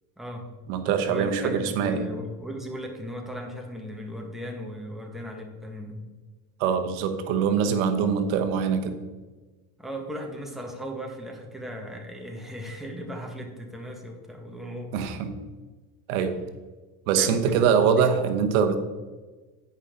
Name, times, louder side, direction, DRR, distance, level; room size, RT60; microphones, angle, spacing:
voice 1, 0.2-0.5 1.0-6.0 9.8-14.9 17.1-18.1, equal, ahead, 1 dB, 1.3 m, -37 dB
voice 2, 0.7-2.1 6.6-9.0 14.9-15.3 16.1-16.3 17.1-18.8, right 7 dB, 80° right, 7 dB, 0.9 m, -23 dB
9.6 x 5.5 x 3.7 m, 1.3 s
supercardioid pair, 110°, 41 cm